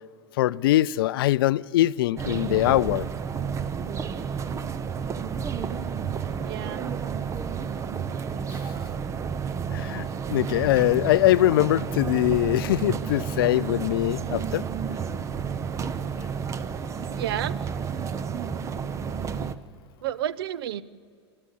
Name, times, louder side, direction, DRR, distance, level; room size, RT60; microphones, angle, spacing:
voice 1, 0.4-3.1 9.7-14.6, left 15 dB, 55° left, 0.4 m, -22 dB
sound 1, 2.2-19.6, right 6 dB, 20° right, 0.8 m, -31 dB
voice 2, 6.4-6.9 17.2-17.6 20.0-20.8, right 11 dB, 60° right, 0.7 m, -30 dB
27.5 x 13.0 x 8.1 m
figure-of-eight pair, 90°, 14 cm